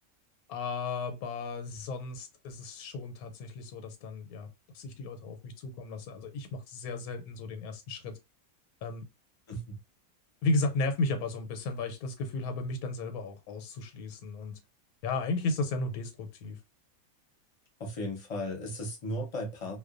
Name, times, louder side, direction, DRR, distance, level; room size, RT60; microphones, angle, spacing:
voice 1, 0.5-4.5 4.7-8.2 8.8-9.0 10.4-14.6 15.0-16.6, left 3 dB, 85° left, 1.1 m, -34 dB
voice 2, 9.5-9.8 17.8-19.8, equal, 35° left, 0.6 m, -36 dB
2.4 x 2.2 x 2.4 m
omnidirectional pair, 1.5 m